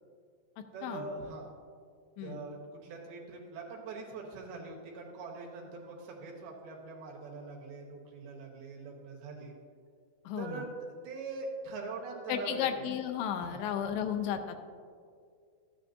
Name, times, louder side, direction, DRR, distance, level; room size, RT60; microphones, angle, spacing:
voice 1, 0.7-1.5 2.2-2.6 2.8-9.6 10.4-10.7 11.0-12.9 13.5-13.7, right 3 dB, 70° right, -1 dB, 2.7 m, -42 dB
voice 2, 10.3-10.6 12.3-14.6, left 9 dB, 90° left, 6 dB, 2.9 m, -33 dB
13.5 x 9.4 x 2.6 m, 2.2 s
omnidirectional pair, 5.1 m